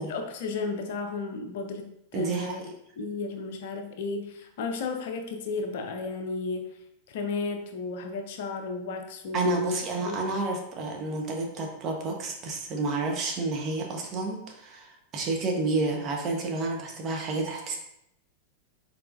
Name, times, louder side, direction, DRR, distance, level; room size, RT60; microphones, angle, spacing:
voice 1, 0.0-2.6 3.0-6.7 7.1-9.8 10.1-10.2, left 4 dB, 55° left, 5 dB, 0.6 m, -33 dB
voice 2, 2.1-2.7 9.3-17.8, right 3 dB, 30° right, 1 dB, 1.0 m, -30 dB
4.5 x 4.1 x 2.5 m, 0.79 s
figure-of-eight pair, 90°, 0 cm